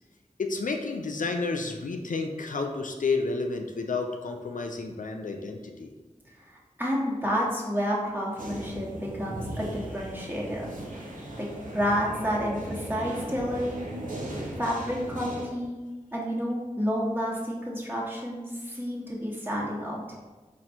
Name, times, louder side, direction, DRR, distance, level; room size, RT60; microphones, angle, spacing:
voice 1, 0.4-5.9, left 3 dB, 80° left, 3 dB, 0.4 m, -31 dB
voice 2, 6.8-10.6 11.4-11.5 11.7-13.9 14.6-15.8 16.1-20.2, equal, 15° right, -4 dB, 1.2 m, -30 dB
sound 1, 8.4-15.5, right 1 dB, 80° right, 0.8 m, -37 dB
4.4 x 2.5 x 4.3 m, 1.2 s
wide cardioid pair, 40°, 13 cm